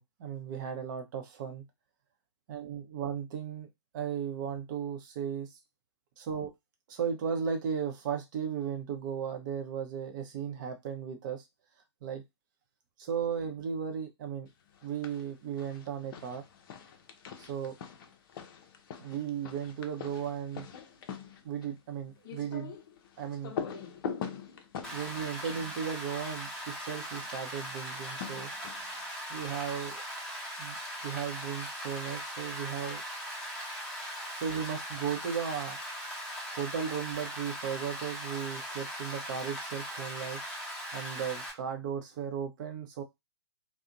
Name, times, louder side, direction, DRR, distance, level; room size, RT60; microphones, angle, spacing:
voice 1, 0.0-1.6 2.5-3.7 3.9-5.6 6.2-6.5 6.9-11.4 12.0-12.2 13.0-14.5 14.8-16.4 17.4-17.7 19.0-20.7 21.4-22.7 23.2-23.5 24.9-28.5 29.3-30.0 30.6-30.8 31.0-33.0 34.3-35.8 36.5-40.4 40.9-43.0, right 7 dB, 45° right, 4 dB, 0.7 m, -36 dB
sound 1, 14.7-15.3 15.6-26.6 27.8-29.0, left 7 dB, 50° left, 0.5 m, -43 dB
Rain, 24.8-41.5, equal, 5° left, 0.8 m, -40 dB
2.5 x 2.1 x 2.4 m, 0.20 s
figure-of-eight pair, 120°, 15 cm